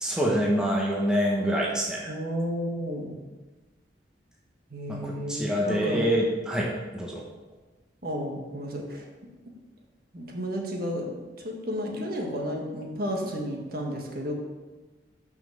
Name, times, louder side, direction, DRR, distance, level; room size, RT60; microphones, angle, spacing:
voice 1, 0.0-2.1 4.9-7.2, equal, 5° right, -4 dB, 1.1 m, -26 dB
voice 2, 2.0-3.2 4.7-6.1 8.0-9.0 10.1-14.3, equal, 55° right, 0 dB, 1.4 m, -32 dB
5.8 x 5.6 x 6.5 m, 1.2 s
head